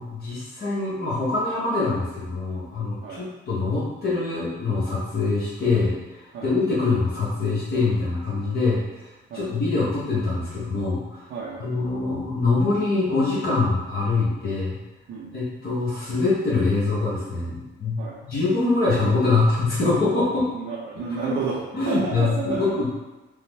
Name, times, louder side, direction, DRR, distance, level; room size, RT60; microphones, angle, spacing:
voice 1, 0.0-5.9 6.4-11.2 11.6-14.8 15.3-20.4 21.2-21.4 21.7-22.9, left 3 dB, 50° left, -8 dB, 1.0 m, -24 dB
voice 2, 11.3-11.7 15.1-15.3 18.0-18.2 20.5-22.7, right 5 dB, 70° right, -5 dB, 0.5 m, -31 dB
3.2 x 2.0 x 3.2 m, 1.1 s
cardioid pair, 90°, 20 cm